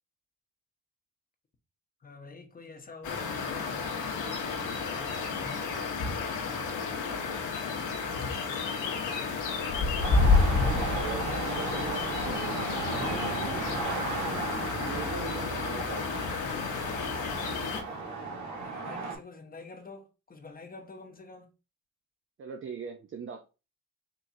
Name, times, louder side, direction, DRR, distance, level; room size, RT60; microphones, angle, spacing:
voice 1, 2.0-6.2 16.4-17.1 18.6-21.5, left 4 dB, 30° left, 0.9 m, -48 dB
sound 1, 3.0-17.8, left 4 dB, 85° left, 1.1 m, -30 dB
sound 2, 10.0-19.2, right 3 dB, 85° right, 1.5 m, -36 dB
voice 2, 10.5-13.8 14.8-16.0 22.4-23.4, right 6 dB, 40° right, 0.6 m, -41 dB
4.4 x 3.2 x 2.6 m
cardioid pair, 90°, 30 cm